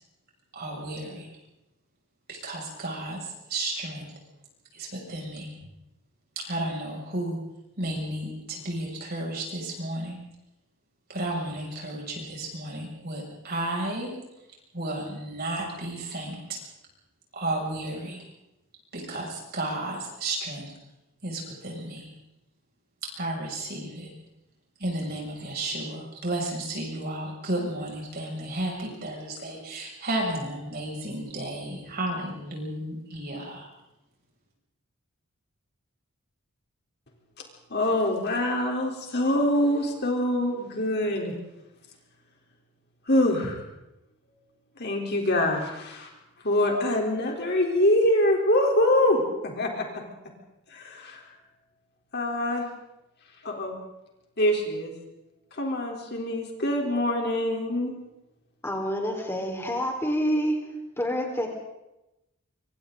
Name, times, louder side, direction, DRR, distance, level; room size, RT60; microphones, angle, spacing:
voice 1, 0.5-1.3 2.3-4.1 4.7-5.5 6.4-7.4 7.8-10.2 11.1-14.1 14.7-16.6 17.3-18.2 18.9-20.7 21.2-22.1 23.2-24.1 24.8-33.7, right 1 dB, 45° right, -2 dB, 6.8 m, -33 dB
voice 2, 37.7-41.3 43.1-43.6 44.8-46.1 46.4-50.0 50.7-51.3 52.1-52.7 53.4-53.8 54.4-54.9 55.5-57.9, left 1 dB, 45° left, 1 dB, 3.8 m, -25 dB
voice 3, 58.6-60.6 61.0-61.5, equal, 10° left, 1 dB, 4.4 m, -27 dB
26.5 x 26.0 x 4.0 m, 0.91 s
head